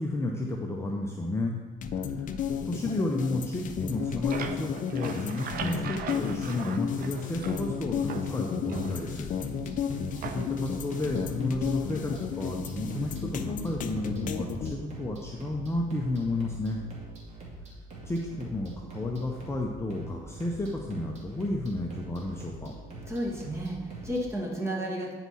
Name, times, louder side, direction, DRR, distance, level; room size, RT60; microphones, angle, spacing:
voice 1, 0.0-1.5 1.9-2.3 2.6-9.3 10.3-16.8 18.0-22.7, left 2 dB, 15° left, 0 dB, 0.7 m, -32 dB
sound 1, 1.8-14.7, left 7 dB, 50° left, 0.5 m, -33 dB
sound 2, 3.8-7.7 8.1-9.4 10.2-10.7, right 7 dB, 60° right, 0.7 m, -40 dB
sound 3, 8.7-24.2, right 2 dB, 40° right, 2.2 m, -44 dB
voice 2, 23.1-25.1, right 1 dB, 15° right, -2 dB, 1.9 m, -32 dB
9.6 x 4.7 x 4.2 m, 1.4 s
cardioid pair, 110°, 17 cm